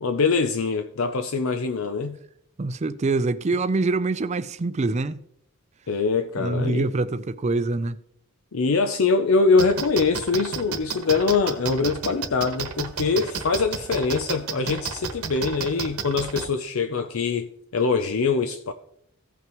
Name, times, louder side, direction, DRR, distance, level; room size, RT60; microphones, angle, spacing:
voice 1, 0.0-2.2 5.9-6.9 8.5-18.7, left 4 dB, 70° left, 0.6 m, -23 dB
voice 2, 2.6-5.2 6.4-8.0, right 3 dB, 30° right, 0.4 m, -25 dB
sound 1, 9.6-16.4, right 6 dB, 80° right, 1.2 m, -30 dB
15.5 x 5.8 x 3.0 m
head